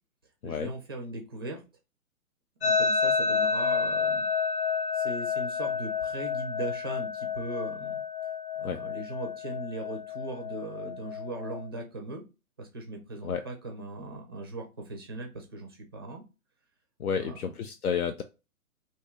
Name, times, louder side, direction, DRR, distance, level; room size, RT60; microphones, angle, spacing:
voice 1, 0.4-1.6 2.6-4.3 4.9-8.0 8.6-12.2 12.6-16.2 17.1-17.5, right 2 dB, 20° right, 3 dB, 0.4 m, -39 dB
sound 1, 2.6-11.7, left 5 dB, 20° left, 0.9 m, -30 dB
voice 2, 17.0-18.2, left 7 dB, 75° left, 6 dB, 0.6 m, -31 dB
3.0 x 2.7 x 3.6 m, 0.29 s
figure-of-eight pair, 130°, 44 cm